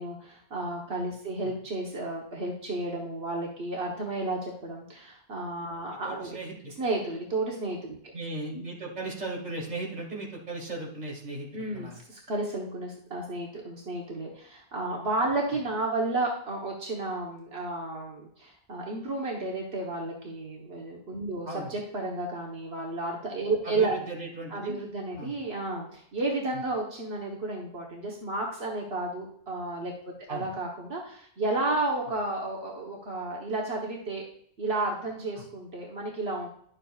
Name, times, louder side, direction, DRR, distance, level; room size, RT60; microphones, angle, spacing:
voice 1, 0.0-6.4 6.8-8.0 11.5-24.0 24.5-29.9 30.3-34.2 34.6-36.5, right 2 dB, 75° right, -2 dB, 1.5 m, -32 dB
voice 2, 6.0-6.7 8.1-12.0 21.4-21.7 23.6-24.8 25.2-25.4 30.3-30.5 35.4-35.5, right 2 dB, 40° right, -2 dB, 2.3 m, -37 dB
11.0 x 7.5 x 2.4 m, 0.65 s
omnidirectional pair, 1.0 m